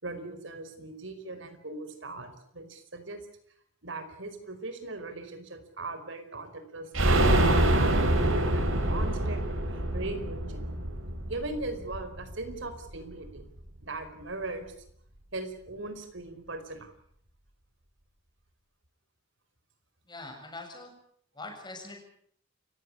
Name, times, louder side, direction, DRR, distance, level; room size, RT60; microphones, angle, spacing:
voice 1, 0.0-3.2 3.8-10.6 11.2-13.5 13.8-14.7 15.3-16.9, right 2 dB, 65° right, 9 dB, 4.8 m, -39 dB
sound 1, 6.9-12.6 12.9-13.0 13.3-13.4, right 1 dB, 90° right, 4.1 m, -26 dB
voice 2, 20.1-20.9 21.3-22.0, left 2 dB, 20° left, 4 dB, 7.0 m, -43 dB
29.0 x 16.5 x 8.6 m, 0.66 s
head